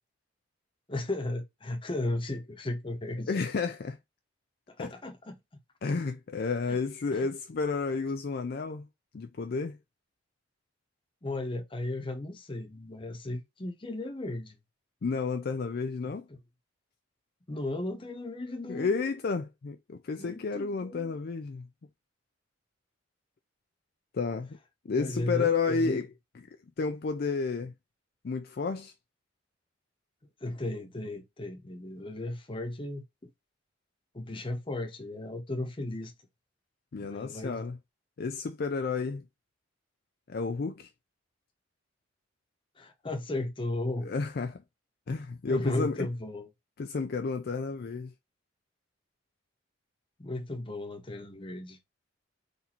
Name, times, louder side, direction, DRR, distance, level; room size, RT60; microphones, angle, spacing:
voice 1, 0.9-3.3 4.8-5.4 6.7-6.8 7.1-7.3 11.2-14.6 16.0-16.4 17.5-18.9 20.2-21.1 24.9-26.0 30.4-33.0 34.1-36.1 37.0-37.6 42.8-44.1 45.5-46.5 50.2-51.8, left 2 dB, 25° left, 0.8 m, -35 dB
voice 2, 3.3-4.0 4.8-4.9 5.8-8.9 9.1-9.8 15.0-16.3 18.7-21.7 24.1-24.6 24.8-26.1 26.8-27.7 28.2-28.9 36.9-37.8 38.2-39.2 40.3-40.9 44.0-44.6 45.1-46.1 46.8-48.1, left 4 dB, 50° left, 0.4 m, -31 dB
4.1 x 2.7 x 4.3 m
head